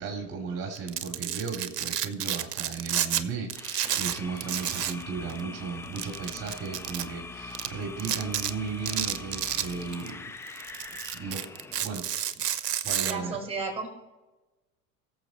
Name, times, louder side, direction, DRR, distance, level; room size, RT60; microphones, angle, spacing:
voice 1, 0.0-10.3 10.6-10.7 11.1-11.4 11.8-12.1 12.3-12.4 12.8-13.4, right 5 dB, 30° right, 0 dB, 2.6 m, -35 dB
Domestic sounds home sounds, 0.7-3.2 3.5-5.0 5.3-5.4 6.0-7.0 7.5-7.7 8.0-8.5 8.9-10.1 10.5-13.1, right 10 dB, 80° right, 0.8 m, -30 dB
sound 1, 3.5-12.0, left 3 dB, 5° left, 0.4 m, -43 dB
voice 2, 13.1-13.9, right 4 dB, 10° right, 1 dB, 4.5 m, -33 dB
21.0 x 7.2 x 3.1 m, 1.1 s
hypercardioid pair, 80°, 47 cm